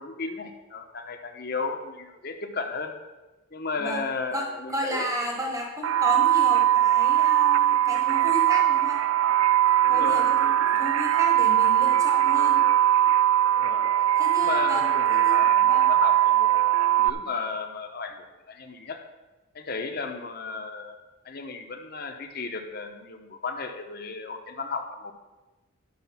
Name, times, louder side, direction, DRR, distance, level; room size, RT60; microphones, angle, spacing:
voice 1, 0.0-2.9 3.5-5.1 9.8-10.5 13.6-13.9 14.4-16.7 17.0-19.0 19.5-21.0 21.2-25.1, left 4 dB, 45° left, 4 dB, 1.0 m, -34 dB
voice 2, 4.3-9.0 9.9-12.6 14.2-15.3 15.7-15.9, equal, 15° right, 1 dB, 1.4 m, -33 dB
sound 1, 5.8-17.1, right 11 dB, 80° right, 0.5 m, -21 dB
11.5 x 6.6 x 5.9 m, 1.1 s
head